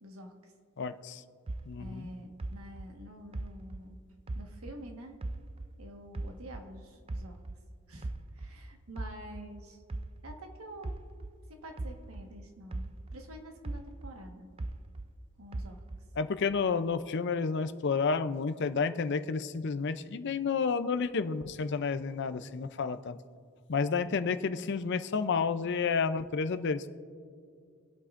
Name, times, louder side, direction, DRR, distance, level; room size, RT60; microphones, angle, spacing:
voice 1, 0.0-0.5 1.8-4.0 4.3-5.2 5.8-7.4 7.9-9.8 10.2-11.0 11.5-14.5 15.4-15.8, equal, 85° right, 3 dB, 1.4 m, -48 dB
voice 2, 0.8-1.2 1.7-2.2 16.2-23.2 23.7-26.9, left 5 dB, 55° left, 12 dB, 0.5 m, -30 dB
sound 1, 1.5-4.9 5.2-7.7 8.0-12.4 12.7-15.2 15.5-16.2, right 2 dB, 25° right, 0.4 m, -40 dB
25.0 x 8.5 x 2.5 m, 2.3 s
head